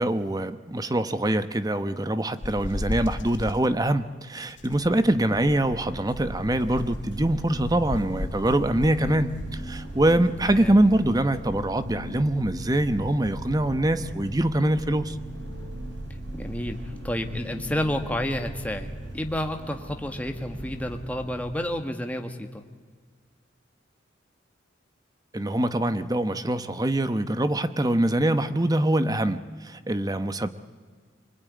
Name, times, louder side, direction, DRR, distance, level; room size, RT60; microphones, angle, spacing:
voice 1, 0.0-15.2 25.3-30.5, right 1 dB, 20° right, 0.9 m, -24 dB
sound 1, 2.4-3.7 4.6-5.8 6.5-7.2 7.9-9.5, left 2 dB, 70° left, 0.9 m, -35 dB
sound 2, 5.2-21.8, right 1 dB, 65° right, 6.2 m, -38 dB
voice 2, 10.4-10.7 16.3-22.6, left 1 dB, 10° left, 1.5 m, -30 dB
25.0 x 22.5 x 9.6 m
head